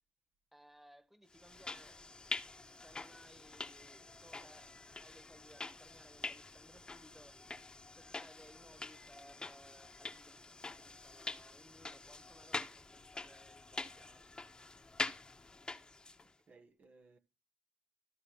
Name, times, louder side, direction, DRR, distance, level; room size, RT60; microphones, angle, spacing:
voice 1, 0.5-2.1 2.7-7.4 7.9-14.3, equal, 5° right, 1.5 m, -62 dB
sound 1, 1.3-16.3, left 3 dB, 25° left, 1.1 m, -46 dB
voice 2, 16.2-17.2, right 3 dB, 55° right, 1.2 m, -63 dB
14.0 x 4.7 x 5.7 m
cardioid pair, 80°, 3 cm